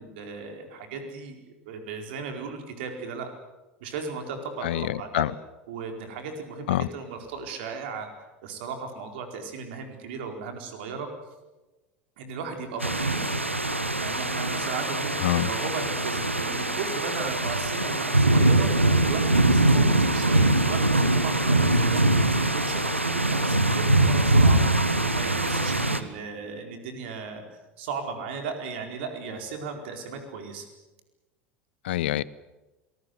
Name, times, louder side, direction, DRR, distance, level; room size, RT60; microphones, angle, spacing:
voice 1, 0.0-1.4 1.6-3.3 3.8-5.3 5.7-8.1 8.4-11.1 12.2-13.2 14.0-27.4 27.8-30.7, right 5 dB, 60° right, 5 dB, 4.5 m, -36 dB
voice 2, 4.6-5.3 6.7-6.9 15.2-15.5 31.8-32.2, left 14 dB, 65° left, 21 dB, 0.8 m, -25 dB
sound 1, 12.8-26.0, right 2 dB, 90° right, 1.4 m, -22 dB
27.0 x 19.5 x 8.0 m, 1.1 s
figure-of-eight pair, 75°, 6 cm